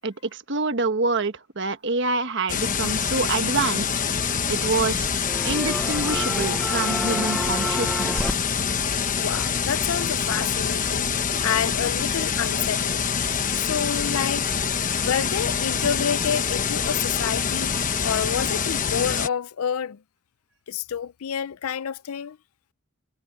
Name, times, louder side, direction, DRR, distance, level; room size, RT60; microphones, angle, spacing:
voice 1, 0.0-3.9 4.5-5.1 5.4-8.3, right 3 dB, 55° right, 1.4 m, -26 dB
sound 1, 2.5-19.3, left 6 dB, 40° left, 1.1 m, -25 dB
sound 2, 4.1-4.9 5.2-8.3, equal, ahead, 0.7 m, -30 dB
voice 2, 8.9-11.1 11.4-13.1 13.5-14.5 15.0-17.7 18.0-20.0 20.7-22.4, left 8 dB, 80° left, 0.5 m, -28 dB
head